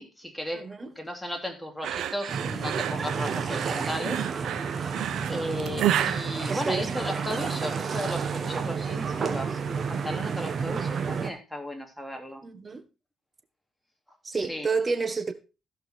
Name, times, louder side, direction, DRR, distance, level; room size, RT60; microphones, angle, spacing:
voice 1, 0.0-4.3 5.3-12.4 14.3-14.7, equal, 5° left, 3.1 m, -35 dB
voice 2, 0.5-0.9 6.5-6.9 12.4-12.9 14.2-15.3, right 4 dB, 30° right, 1.6 m, -30 dB
sound 1, 1.8-7.4, right 11 dB, 75° right, 1.1 m, -31 dB
sound 2, 2.3-11.3, right 6 dB, 50° right, 1.8 m, -31 dB
15.5 x 5.8 x 4.5 m
cardioid pair, 90°, 0 cm